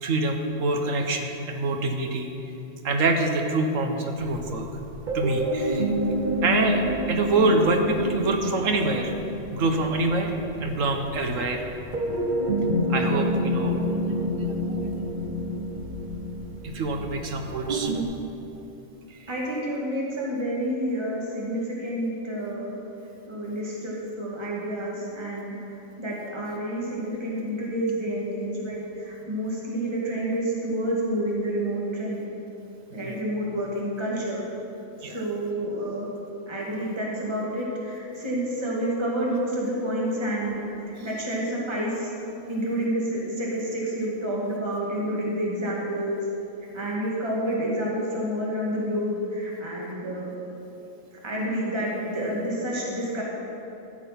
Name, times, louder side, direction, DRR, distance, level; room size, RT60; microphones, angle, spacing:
voice 1, 0.0-2.3 2.8-4.7 5.1-5.9 6.4-6.8 7.1-9.1 9.5-10.3 10.6-11.6 12.9-13.9 14.4-14.8 16.6-17.9 19.1-19.3 32.9-33.2 35.0-35.2 41.0-41.1, right 2 dB, 85° right, 4 dB, 1.4 m, -25 dB
sound 1, 4.2-18.0, equal, 40° right, 1.0 m, -28 dB
voice 2, 19.3-22.7 23.3-25.6 26.0-32.3 32.9-34.4 35.1-36.1 36.5-40.6 41.0-42.1 42.5-46.2 46.7-50.3 51.2-53.2, right 1 dB, 20° right, -4 dB, 1.9 m, -29 dB
13.5 x 7.4 x 5.7 m, 2.9 s
omnidirectional pair, 1.3 m